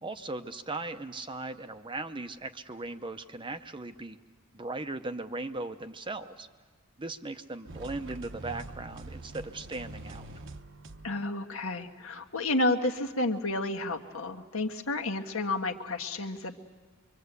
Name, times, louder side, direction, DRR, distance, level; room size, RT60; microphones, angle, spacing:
voice 1, 0.0-4.2 4.5-6.5 7.0-10.3, right 2 dB, 25° right, 8 dB, 0.7 m, -38 dB
sound 1, 7.7-11.4, right 2 dB, 60° right, 0.9 m, -44 dB
voice 2, 11.0-16.6, left 2 dB, 70° left, 3 dB, 1.6 m, -31 dB
24.5 x 24.5 x 8.2 m, 1.4 s
head